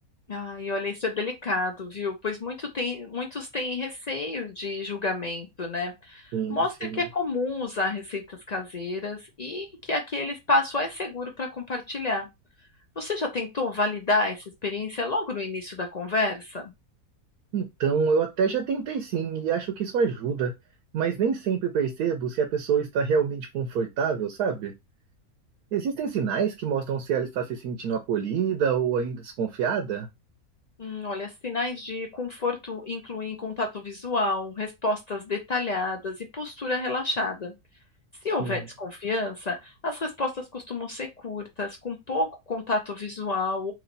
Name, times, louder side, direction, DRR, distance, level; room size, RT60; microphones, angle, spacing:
voice 1, 0.3-12.3 13.0-16.7 30.8-37.5 38.2-43.7, left 3 dB, 65° left, 3 dB, 0.4 m, -30 dB
voice 2, 6.3-7.0 17.5-20.5 20.9-24.7 25.7-30.1 38.4-38.6, right 6 dB, 90° right, 5 dB, 1.2 m, -26 dB
3.1 x 3.0 x 3.9 m, 0.21 s
omnidirectional pair, 1.6 m